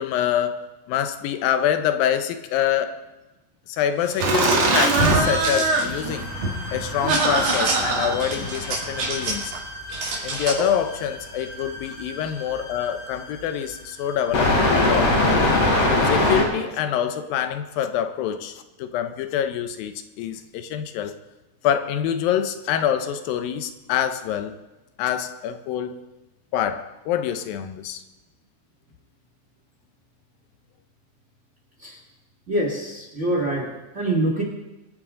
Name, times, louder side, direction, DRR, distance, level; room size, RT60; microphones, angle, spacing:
voice 1, 0.0-3.0 3.7-6.3 6.7-9.5 10.2-15.7 16.1-21.1 21.6-24.6 25.0-26.0 26.5-28.0, left 9 dB, 85° left, 2.6 m, -26 dB
sound 1, 4.0-5.9 7.1-7.8 8.2-9.6 9.9-10.7, right 3 dB, 80° right, 4.9 m, -30 dB
Laughter, 4.2-9.4, right 2 dB, 55° right, 2.7 m, -23 dB
sound 2, 5.9-16.4, left 2 dB, 55° left, 3.9 m, -25 dB
voice 2, 32.5-33.7 33.9-34.4, right 1 dB, 25° right, 1.9 m, -24 dB
24.5 x 9.5 x 3.8 m
omnidirectional pair, 4.0 m